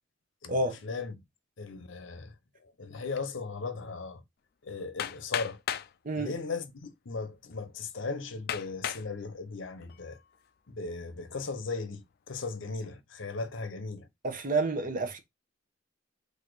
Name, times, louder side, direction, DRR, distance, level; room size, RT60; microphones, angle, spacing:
voice 1, 0.4-1.1 1.6-2.3 2.8-4.2 4.6-5.6 6.1-10.2 10.7-14.1, left 4 dB, 80° left, 0.7 m, -37 dB
Hammer, 5.0-5.9 6.8-6.9 7.5-7.6 8.5-9.1 9.7-10.1, left 10 dB, 55° left, 0.4 m, -34 dB
voice 2, 14.2-15.2, right 2 dB, 45° right, 0.9 m, -29 dB
4.0 x 2.7 x 4.6 m
head